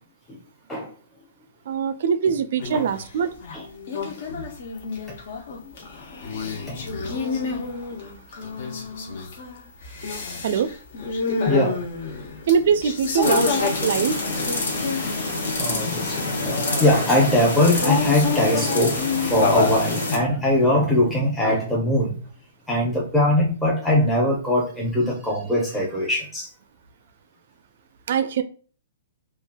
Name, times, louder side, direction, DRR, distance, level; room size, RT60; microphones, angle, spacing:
voice 1, 1.7-3.3 10.4-10.7 12.5-13.5 13.8-14.2 28.1-28.4, right 7 dB, 60° right, 0.3 m, -22 dB
sound 1, 2.6-3.1 3.4-15.3 15.7-16.7 17.6-19.9, left 4 dB, 60° left, 0.6 m, -28 dB
voice 2, 11.5-11.8 15.6-22.1 22.7-26.5, left 1 dB, 5° left, 0.6 m, -21 dB
sound 2, 13.2-20.2, left 2 dB, 80° left, 0.9 m, -27 dB
3.1 x 2.3 x 2.2 m
hypercardioid pair, 135°, 0 cm